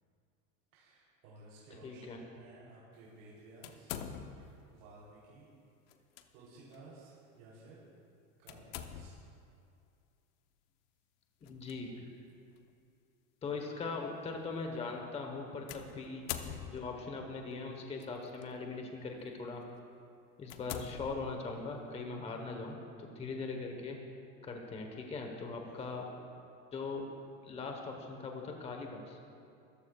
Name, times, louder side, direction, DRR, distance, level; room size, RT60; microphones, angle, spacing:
voice 1, 0.7-3.9 4.3-5.5 6.3-7.8 8.4-9.2 13.4-13.6 25.6-26.1, right 2 dB, 90° right, -7 dB, 3.4 m, -56 dB
voice 2, 1.8-2.2 11.4-12.1 13.4-16.2 16.7-19.6 20.4-24.0 24.4-26.0 26.7-27.1 27.4-29.2, left 4 dB, 15° left, 2 dB, 1.1 m, -40 dB
sound 1, 3.6-4.6 5.9-6.2 6.7-6.8 8.5-9.4 11.4-11.7 12.6-12.7 15.7-17.1 18.0-18.4 19.0-19.2 19.7-19.8 20.4-21.7, left 9 dB, 65° left, 0.9 m, -44 dB
23.5 x 14.5 x 2.4 m, 2.4 s
supercardioid pair, 165°, 38 cm